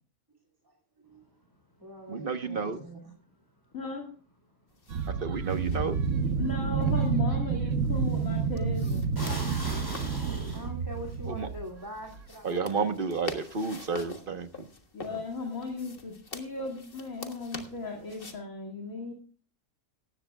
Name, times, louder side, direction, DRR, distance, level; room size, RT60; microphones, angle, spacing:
voice 1, 0.6-1.2 1.8-3.1 9.4-12.9, right 1 dB, 15° right, 2 dB, 2.3 m, -44 dB
voice 2, 2.1-2.8 5.2-6.0 11.4-11.5 12.4-14.7, right 5 dB, 40° right, 8 dB, 1.3 m, -31 dB
voice 3, 3.7-4.1 6.4-9.1 14.9-19.1, left 3 dB, 65° left, -1 dB, 2.7 m, -36 dB
sound 1, 4.7-18.4, left 2 dB, 40° left, 1.7 m, -47 dB
sound 2, 4.9-11.7 12.2-12.3, right 5 dB, 60° right, 1.3 m, -29 dB
sound 3, 8.1-8.4 9.2-11.2, left 1 dB, 15° left, 4.5 m, -40 dB
18.0 x 15.0 x 2.3 m, 0.42 s
omnidirectional pair, 1.6 m